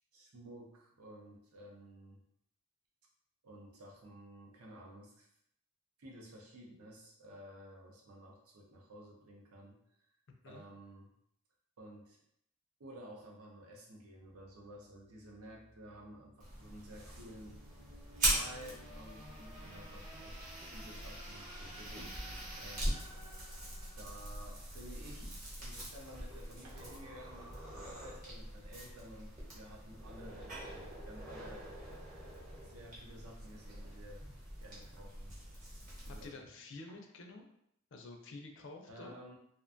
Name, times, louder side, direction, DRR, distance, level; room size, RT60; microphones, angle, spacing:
voice 1, 0.1-2.2 3.4-5.3 6.0-9.8 10.4-11.1 11.8-12.2 12.8-17.6 17.9-18.0 18.3-22.9 24.0-31.7 32.6-34.3 34.6-35.4 36.0-36.5 38.9-39.3, equal, 80° right, -1 dB, 0.6 m, -53 dB
sound 1, 15.0-25.2, equal, 15° right, 0.6 m, -56 dB
sound 2, 16.4-36.3, right 1 dB, 35° right, 0.9 m, -42 dB
voice 2, 36.2-37.5 37.9-39.1, left 3 dB, 55° left, 3 dB, 0.4 m, -49 dB
2.5 x 2.2 x 2.5 m, 0.74 s
head